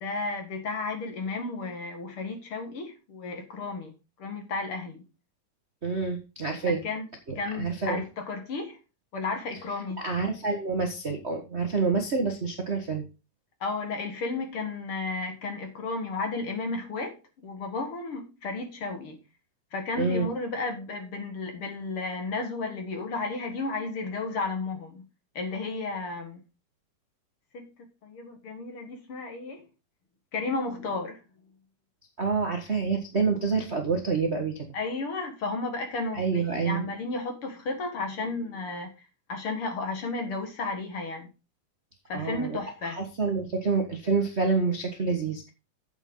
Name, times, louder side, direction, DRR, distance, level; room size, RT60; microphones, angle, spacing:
voice 1, 0.0-3.9 4.2-5.0 6.7-7.1 7.4-8.8 9.1-10.0 13.6-19.2 19.7-25.0 25.4-26.4 27.5-27.7 28.0-29.7 30.3-31.2 34.7-38.9 39.3-41.3 42.1-43.0, left 3 dB, 50° left, 2.3 m, -33 dB
voice 2, 5.8-6.8 7.6-8.0 10.0-13.0 20.0-20.3 32.2-34.6 36.1-36.9 42.1-42.6 42.8-45.5, right 4 dB, 55° right, 0.7 m, -27 dB
9.5 x 8.1 x 3.8 m
omnidirectional pair, 3.5 m